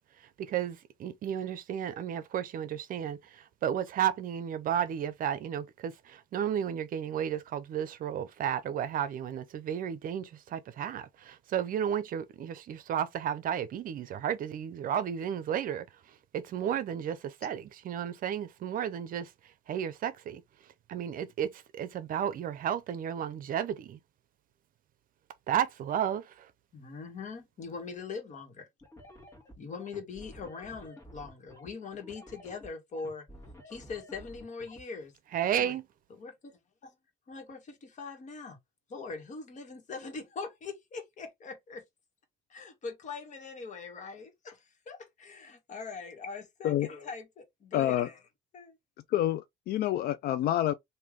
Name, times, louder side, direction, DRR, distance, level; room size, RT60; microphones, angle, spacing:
voice 1, 0.4-15.9 16.3-19.3 19.7-20.4 20.9-24.0 25.5-26.5 35.3-35.8, right 9 dB, 55° right, 0.6 m, -33 dB
voice 2, 26.7-28.7 29.6-33.2 33.6-35.1 35.6-35.8 36.1-36.9 37.3-38.6 38.9-41.8 42.5-48.2 48.5-48.8, left 4 dB, 45° left, 1.5 m, -42 dB
sound 1, 28.8-34.8, equal, 20° left, 1.6 m, -51 dB
voice 3, 47.7-48.1 49.1-50.7, left 12 dB, 65° left, 0.4 m, -28 dB
3.3 x 2.7 x 3.6 m
cardioid pair, 110°, 17 cm